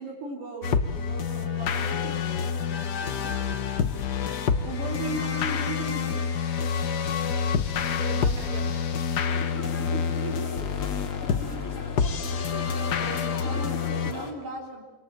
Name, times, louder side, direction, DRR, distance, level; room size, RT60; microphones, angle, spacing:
voice 1, 0.0-3.7 4.6-6.3 8.1-8.5 9.4-11.0 13.0-14.8, right 3 dB, 80° right, 1 dB, 4.9 m, -38 dB
sound 1, 0.6-14.1, left 6 dB, 60° left, 1.0 m, -28 dB
voice 2, 1.3-1.7 4.4-4.9 7.2-7.6 8.0-8.9 11.3-13.2, right 7 dB, 55° right, 2 dB, 3.8 m, -47 dB
Synth Wet Road Traffic Noise, 2.8-9.3, left 6 dB, 45° left, 1.9 m, -46 dB
sound 2, 9.3-14.3, left 4 dB, 25° left, 2.5 m, -39 dB
27.0 x 26.0 x 7.5 m, 1.2 s
omnidirectional pair, 3.5 m